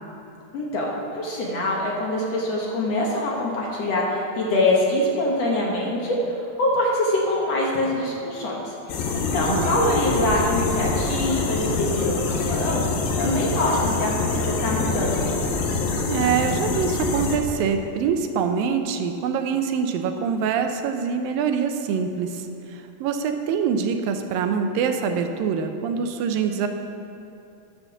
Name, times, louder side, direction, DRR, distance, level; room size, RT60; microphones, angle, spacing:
voice 1, 0.5-15.3, left 1 dB, 55° left, -3 dB, 2.2 m, -24 dB
sound 1, 8.9-17.4, left 4 dB, 90° left, 2.9 m, -25 dB
voice 2, 9.5-9.8 16.1-26.7, right 6 dB, 85° right, 6 dB, 2.4 m, -25 dB
10.5 x 7.0 x 7.0 m, 2.7 s
omnidirectional pair, 4.0 m